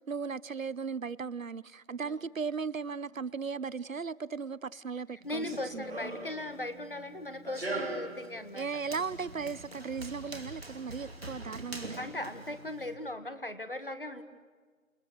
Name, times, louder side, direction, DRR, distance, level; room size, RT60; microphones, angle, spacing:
voice 1, 0.1-5.4 5.7-6.0 8.5-12.1, right 5 dB, 70° right, 0.7 m, -37 dB
voice 2, 5.1-8.7 12.0-14.2, left 1 dB, 40° left, 1.7 m, -38 dB
Run, 5.2-12.9, right 2 dB, 45° right, 2.7 m, -42 dB
28.5 x 21.5 x 6.6 m
figure-of-eight pair, 180°, 42 cm